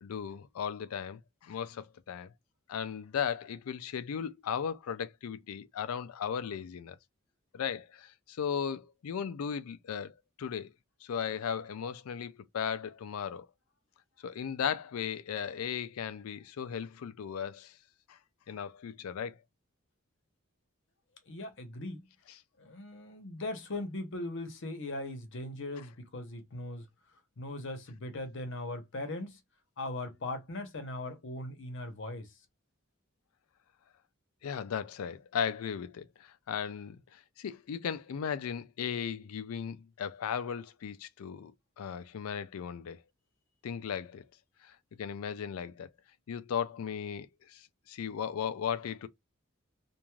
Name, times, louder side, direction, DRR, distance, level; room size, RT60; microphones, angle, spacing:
voice 1, 0.0-2.3 2.7-7.0 7.5-10.7 11.0-13.5 14.2-17.8 18.1-18.2 18.5-19.4 25.8-25.9 34.4-43.0 43.6-44.2 44.6-45.9 46.3-49.1, left 7 dB, 85° left, 0.4 m, -36 dB
voice 2, 21.3-22.1 22.6-26.8 27.4-29.4 29.8-32.3, left 2 dB, 60° left, 0.8 m, -39 dB
3.1 x 2.6 x 2.3 m
head